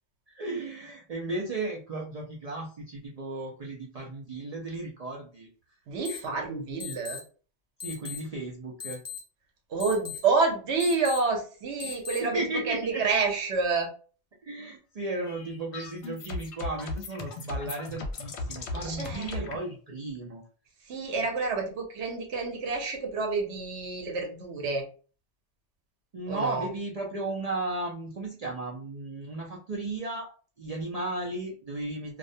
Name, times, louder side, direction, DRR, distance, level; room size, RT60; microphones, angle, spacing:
voice 1, 0.3-5.5 7.8-9.0 11.8-13.0 14.4-20.4 26.1-30.3 30.6-32.2, right 2 dB, 55° right, -2 dB, 0.4 m, -35 dB
voice 2, 5.9-7.2 9.7-12.4 12.7-13.9 18.8-19.5 20.9-24.8 26.3-26.7, right 4 dB, 75° right, 2 dB, 1.0 m, -28 dB
sound 1, 6.0-6.2 6.8-7.2 7.8-8.2 8.8-9.2 9.8-10.2 10.8-11.2 11.8-12.2, left 8 dB, 25° left, 0.6 m, -37 dB
sound 2, 15.2-19.6, left 3 dB, 70° left, 0.8 m, -37 dB
2.4 x 2.1 x 2.6 m, 0.38 s
omnidirectional pair, 1.2 m